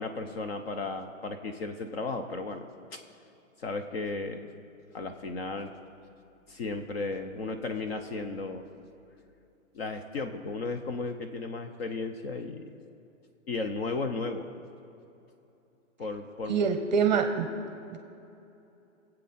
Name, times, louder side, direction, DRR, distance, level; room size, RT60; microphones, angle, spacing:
voice 1, 0.0-3.0 3.6-4.5 4.9-5.7 6.5-8.7 9.7-12.8 13.5-14.5 16.0-16.7 16.9-17.2, left 3 dB, 50° left, 6 dB, 0.9 m, -35 dB
voice 2, 16.5-17.5 17.9-18.0, right 6 dB, 35° right, 6 dB, 0.8 m, -25 dB
22.5 x 8.1 x 4.3 m, 2.8 s
hypercardioid pair, 165°, 40 cm